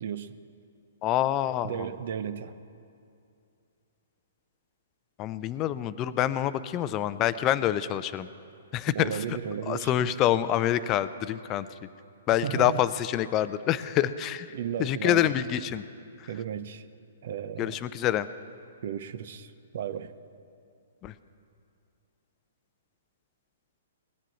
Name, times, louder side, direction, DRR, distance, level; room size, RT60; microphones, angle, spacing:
voice 1, 0.0-0.3 1.6-2.5 8.9-10.1 12.4-12.8 14.5-15.4 16.3-16.8 17.2-17.8 18.8-20.1, right 8 dB, 55° right, 13 dB, 0.7 m, -34 dB
voice 2, 1.0-1.9 5.2-8.3 8.7-9.2 9.7-11.7 12.3-14.5 14.8-15.8 17.6-18.3 21.0-21.1, left 12 dB, 30° left, 14 dB, 0.5 m, -26 dB
19.5 x 7.4 x 7.8 m, 2.5 s
figure-of-eight pair, 120°, 0 cm